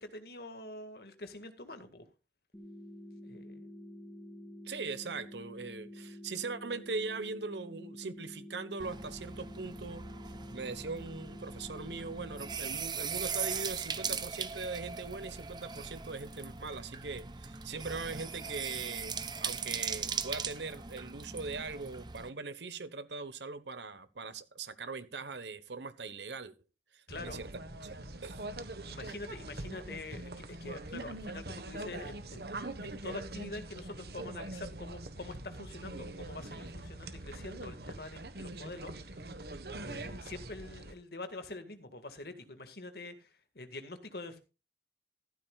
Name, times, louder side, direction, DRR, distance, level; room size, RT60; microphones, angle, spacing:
voice 1, 0.0-2.1 3.2-3.7 27.1-27.4 28.9-32.5 32.8-39.2 39.8-44.4, left 2 dB, 60° left, 1.9 m, -45 dB
sound 1, 2.5-12.5, left 1 dB, 15° left, 2.6 m, -49 dB
voice 2, 4.6-10.1 10.5-19.1 19.4-26.5 26.9-27.5 27.8-28.4, right 4 dB, 80° right, 1.2 m, -41 dB
sound 2, 8.8-22.3, right 6 dB, 25° right, 0.8 m, -39 dB
sound 3, 27.1-40.9, right 2 dB, 60° right, 1.4 m, -43 dB
14.5 x 12.5 x 2.4 m
head